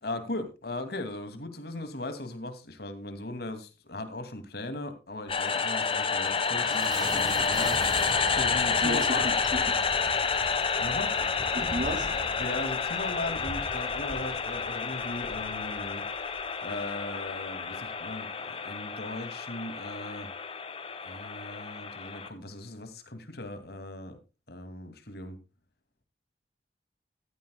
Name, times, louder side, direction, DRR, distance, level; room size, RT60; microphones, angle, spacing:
voice 1, 0.0-9.3 10.8-11.5 12.4-16.1 16.6-20.3 21.0-24.2 24.5-25.4, left 2 dB, 60° left, 9 dB, 2.5 m, -38 dB
sound 1, 5.3-22.3, left 5 dB, 30° left, 1.4 m, -30 dB
sound 2, 6.1-16.5, right 1 dB, 25° right, 1.2 m, -41 dB
voice 2, 8.8-9.6 11.5-12.1, equal, 50° right, 7 dB, 2.5 m, -32 dB
14.5 x 14.5 x 2.3 m, 0.28 s
head